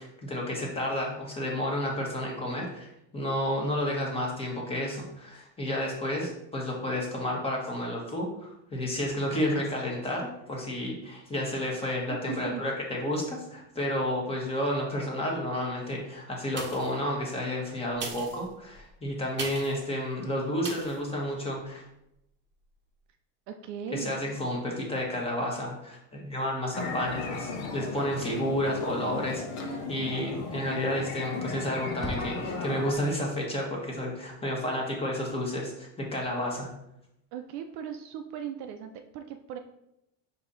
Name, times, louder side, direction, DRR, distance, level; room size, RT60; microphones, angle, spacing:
voice 1, 0.0-21.8 23.9-36.7, left 1 dB, 15° left, -1 dB, 1.2 m, -31 dB
voice 2, 12.1-12.6 23.5-24.2 37.3-39.6, right 9 dB, 50° right, 6 dB, 0.4 m, -38 dB
sound 1, 16.5-17.0 17.9-19.8 20.6-21.0 21.5-21.6, right 4 dB, 30° right, 0.9 m, -39 dB
sound 2, 26.7-32.9, left 3 dB, 80° left, 0.9 m, -35 dB
sound 3, 28.1-28.6 30.7-31.2 31.5-31.6 32.0-32.7, left 2 dB, ahead, 0.5 m, -40 dB
4.8 x 2.8 x 3.8 m, 0.83 s
supercardioid pair, 125°, 37 cm